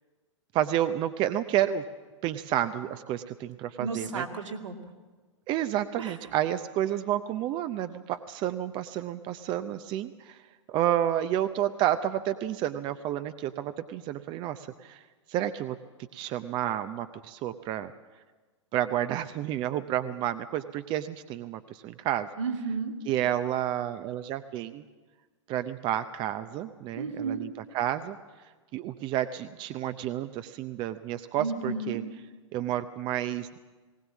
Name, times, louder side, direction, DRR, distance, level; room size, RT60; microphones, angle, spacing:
voice 1, 0.5-1.8 2.2-4.2 5.5-10.4 10.7-15.0 15.3-15.8 16.1-17.9 18.7-22.3 23.1-24.8 25.5-27.5 27.7-28.2 28.7-32.0 32.5-33.6, right 12 dB, 30° right, 11 dB, 0.6 m, -30 dB
voice 2, 3.8-4.9 6.0-6.3 22.4-23.0 26.9-27.5 31.4-32.0, right 4 dB, 75° right, 1 dB, 2.4 m, -33 dB
19.5 x 18.0 x 7.3 m, 1.3 s
figure-of-eight pair, 110°, 16 cm